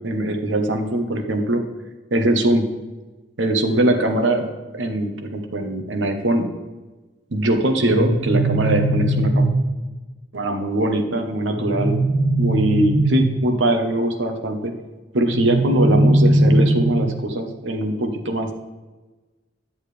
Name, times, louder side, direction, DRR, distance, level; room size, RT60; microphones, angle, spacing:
voice 1, 0.0-1.6 2.1-2.6 3.4-4.4 4.7-6.5 7.3-9.5 10.3-12.0 12.4-14.7 15.1-18.5, right 1 dB, 80° right, 5 dB, 1.1 m, -21 dB
sound 1, 7.9-9.8 11.5-13.5 15.3-17.2, right 1 dB, 40° right, 1.6 m, -19 dB
10.5 x 7.2 x 3.3 m, 1.2 s
head